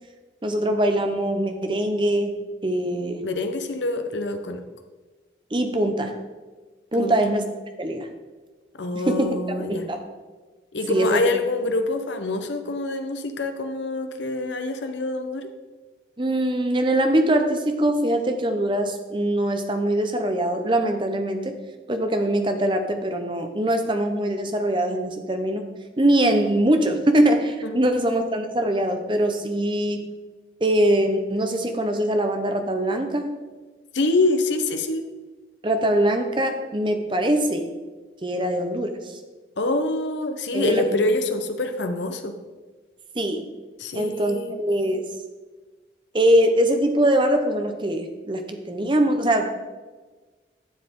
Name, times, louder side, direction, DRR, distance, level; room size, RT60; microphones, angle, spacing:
voice 1, 0.4-3.3 5.5-6.1 6.9-7.4 7.8-8.1 8.9-10.0 10.9-11.3 16.2-21.5 21.9-25.6 26.0-30.1 30.6-33.3 35.6-37.7 38.2-39.2 40.5-41.0 43.1-43.4 43.9-45.0 46.1-49.5, right 1 dB, 25° right, 6 dB, 0.9 m, -22 dB
voice 2, 3.2-4.6 6.9-7.2 8.8-9.9 10.7-15.5 27.6-27.8 33.9-35.0 39.6-42.3 43.8-44.6, left 2 dB, 90° left, 7 dB, 0.9 m, -25 dB
12.0 x 7.2 x 3.7 m, 1.3 s
head